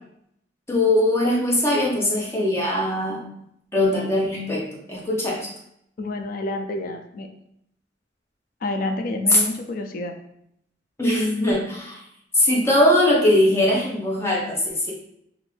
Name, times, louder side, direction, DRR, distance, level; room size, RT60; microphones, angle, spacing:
voice 1, 0.7-3.2 3.7-4.6 4.9-5.5 11.0-12.0 12.3-14.9, left 1 dB, 15° left, -4 dB, 0.8 m, -21 dB
voice 2, 6.0-7.3 8.6-10.1, left 2 dB, 50° left, 6 dB, 0.4 m, -28 dB
2.5 x 2.5 x 3.2 m, 0.74 s
head